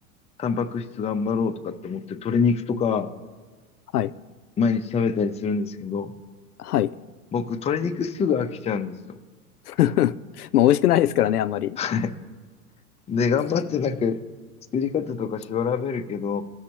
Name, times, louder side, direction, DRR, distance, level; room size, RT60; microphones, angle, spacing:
voice 1, 0.4-3.1 4.6-6.1 7.3-9.2 11.8-12.1 13.1-14.2 14.7-16.4, left 6 dB, 15° left, 6 dB, 0.5 m, -25 dB
voice 2, 6.6-6.9 9.7-11.8, left 12 dB, 85° left, 13 dB, 0.5 m, -21 dB
16.5 x 6.4 x 2.9 m, 1.4 s
hypercardioid pair, 90°, 44 cm